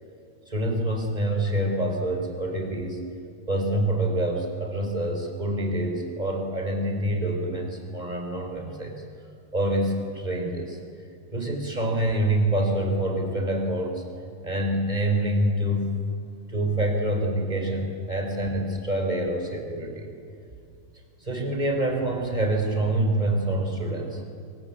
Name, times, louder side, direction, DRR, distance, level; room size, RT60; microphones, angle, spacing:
voice 1, 0.5-3.0 3.5-9.0 9.5-10.8 11.3-14.0 14.4-15.9 16.5-20.1 21.2-24.2, right 1 dB, 10° right, 3 dB, 3.8 m, -26 dB
26.5 x 24.5 x 8.5 m, 2.4 s
omnidirectional pair, 4.7 m